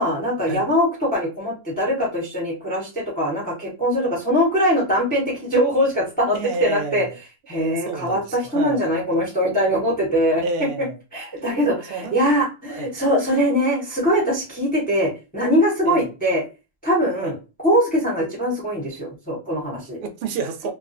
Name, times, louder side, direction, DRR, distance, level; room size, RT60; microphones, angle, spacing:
voice 1, 0.0-7.0 7.5-10.4 11.1-16.4 16.8-17.4 17.6-20.0, equal, 10° left, 0.5 m, -22 dB
voice 2, 6.3-7.2 7.5-8.9 10.4-11.0 11.4-11.5 11.9-12.2 12.7-12.9 15.8-16.1 17.2-17.3 20.0-20.7, right 4 dB, 65° right, 0.6 m, -30 dB
2.3 x 2.1 x 2.5 m
omnidirectional pair, 1.4 m